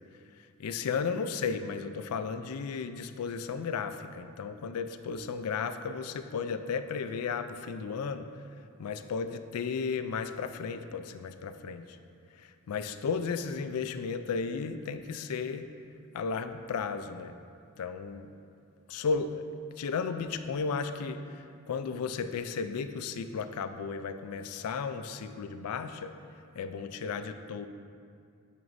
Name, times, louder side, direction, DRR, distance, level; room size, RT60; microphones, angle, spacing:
voice 1, 0.6-8.4 8.8-12.0 12.3-15.7 16.1-17.4 17.8-18.3 18.9-19.5 19.8-26.2 26.5-27.7, left 5 dB, 90° left, 10 dB, 0.4 m, -34 dB
9.3 x 6.0 x 2.6 m, 2.3 s
head